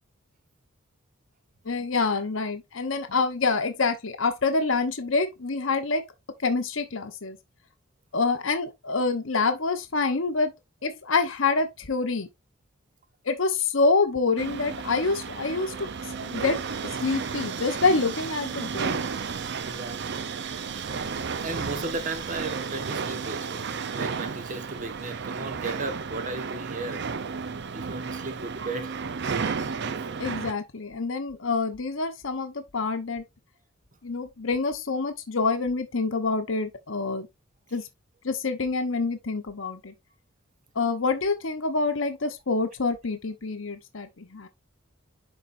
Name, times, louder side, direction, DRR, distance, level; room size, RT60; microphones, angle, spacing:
voice 1, 1.6-6.1 6.4-7.4 8.1-10.5 10.8-12.3 13.2-15.9 16.2-16.6 17.0-19.0 30.2-33.2 34.0-37.3 37.7-37.8 38.2-39.9 40.7-44.5, left 3 dB, 70° left, 1.0 m, -26 dB
sound 1, 14.4-30.5, right 5 dB, 60° right, 0.6 m, -33 dB
voice 2, 19.6-20.0 20.7-20.8 21.3-27.0 27.7-29.0, right 2 dB, 40° right, 1.3 m, -35 dB
10.5 x 4.3 x 2.6 m
head